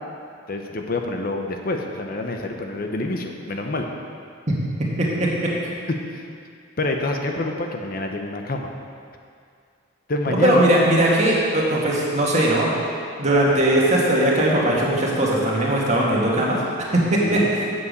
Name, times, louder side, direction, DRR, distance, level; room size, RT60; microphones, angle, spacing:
voice 1, 0.5-3.9 5.9-6.2 6.8-8.7 10.1-10.7 17.2-17.5, left 2 dB, 50° left, 3 dB, 0.8 m, -27 dB
voice 2, 10.4-12.7 13.2-16.6 16.9-17.6, right 1 dB, 35° right, -4 dB, 2.0 m, -19 dB
8.5 x 7.4 x 6.7 m, 2.3 s
head